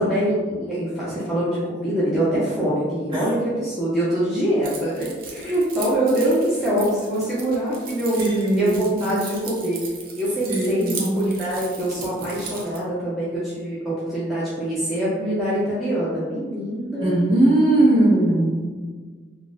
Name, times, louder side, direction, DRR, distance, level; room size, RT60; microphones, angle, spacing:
voice 1, 0.0-8.2 8.5-9.8 10.2-17.1, right 1 dB, ahead, -11 dB, 0.6 m, -24 dB
Keys jangling, 4.6-12.8, right 5 dB, 55° right, 0.5 m, -38 dB
voice 2, 8.2-9.2 10.5-11.3 17.0-18.7, right 1 dB, 25° right, -8 dB, 1.1 m, -20 dB
3.9 x 2.4 x 2.4 m, 1.4 s
head